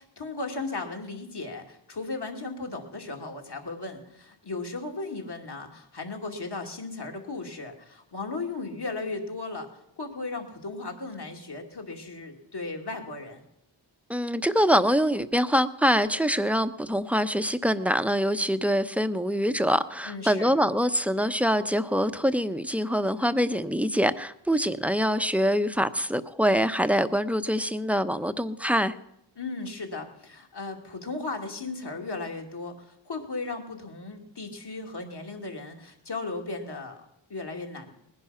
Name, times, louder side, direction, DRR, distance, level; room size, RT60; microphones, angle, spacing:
voice 1, 0.0-9.7 10.0-13.4 20.1-20.5 29.4-37.0 37.3-37.9, left 3 dB, 55° left, 2 dB, 2.7 m, -36 dB
voice 2, 14.1-28.9, equal, 5° right, 10 dB, 0.8 m, -24 dB
19.5 x 11.0 x 5.8 m, 0.80 s
cardioid pair, 45°, 47 cm